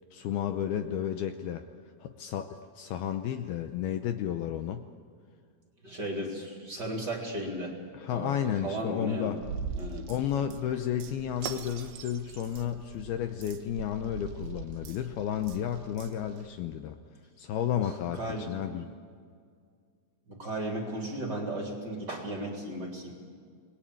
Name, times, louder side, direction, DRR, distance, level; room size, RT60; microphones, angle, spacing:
voice 1, 0.1-1.6 2.0-4.8 7.9-9.4 10.1-17.0 17.4-18.9, left 10 dB, 75° left, 7 dB, 2.5 m, -32 dB
voice 2, 5.8-7.7 8.1-9.3 9.8-10.1 17.8-18.5 20.3-23.1, right 1 dB, 25° right, 1 dB, 3.4 m, -35 dB
sound 1, 9.4-16.6, right 5 dB, 75° right, 3.6 m, -42 dB
29.0 x 20.5 x 8.7 m, 2.1 s
omnidirectional pair, 5.1 m